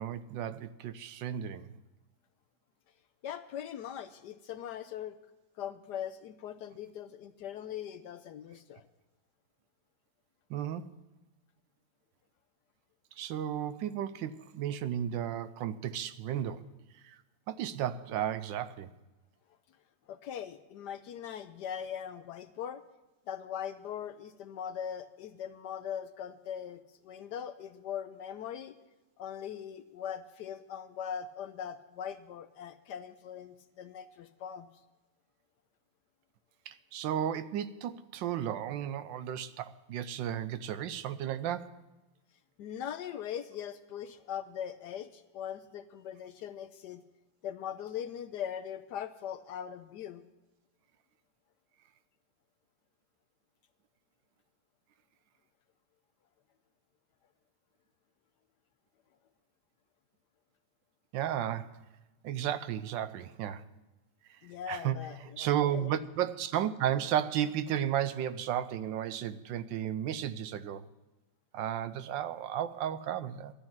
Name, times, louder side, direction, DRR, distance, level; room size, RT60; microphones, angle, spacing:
voice 1, 0.0-1.7 10.5-10.9 13.2-16.6 17.0-17.2 17.5-18.9 36.7-41.8 61.1-61.8 62.2-63.6 64.7-65.0 65.4-70.8 71.5-73.5, right 10 dB, 80° right, 1.3 m, -33 dB
voice 2, 3.2-5.2 5.6-8.9 20.1-22.8 23.3-28.7 29.2-34.7 42.6-47.0 47.4-50.2 64.4-65.9, left 9 dB, 70° left, 1.1 m, -40 dB
12.0 x 9.9 x 7.1 m
omnidirectional pair, 2.1 m